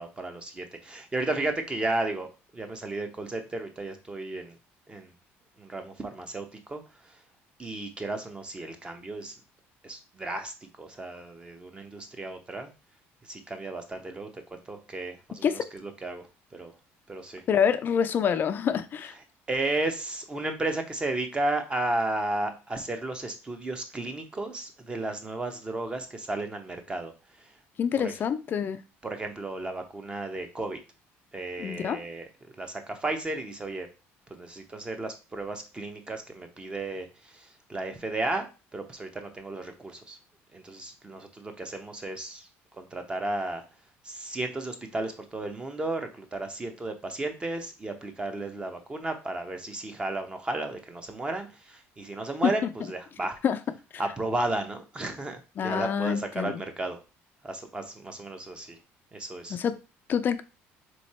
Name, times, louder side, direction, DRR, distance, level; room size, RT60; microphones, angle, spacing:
voice 1, 0.0-2.3 2.5-4.6 4.9-5.1 5.6-7.1 7.6-9.3 9.8-12.7 13.2-16.2 16.5-16.7 17.1-17.4 19.5-27.1 27.4-27.5 28.0-28.1 29.0-30.8 31.3-32.3 32.6-33.9 34.3-38.5 38.7-40.2 40.5-42.5 42.7-43.6 44.0-53.4 54.0-57.0 57.4-58.8 59.1-59.6, right 2 dB, 20° right, 6 dB, 0.8 m, -33 dB
voice 2, 17.5-19.2 27.8-28.8 31.6-32.0 52.4-52.5 53.4-53.6 55.6-56.5 59.5-59.8 60.1-60.4, left 7 dB, 40° left, 11 dB, 0.4 m, -26 dB
3.7 x 3.1 x 4.2 m, 0.31 s
cardioid pair, 120°, 5 cm